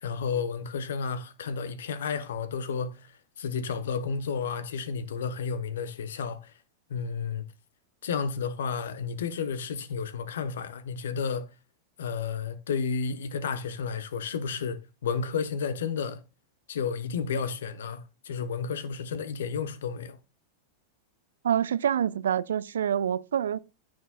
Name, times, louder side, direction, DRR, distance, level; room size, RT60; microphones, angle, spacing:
voice 1, 0.0-6.5 6.9-7.4 8.0-11.5 12.0-16.2 16.7-20.2, left 6 dB, 60° left, 1.0 m, -32 dB
voice 2, 21.4-23.6, right 9 dB, 65° right, 0.5 m, -26 dB
14.0 x 6.5 x 2.3 m
figure-of-eight pair, 90°, 0 cm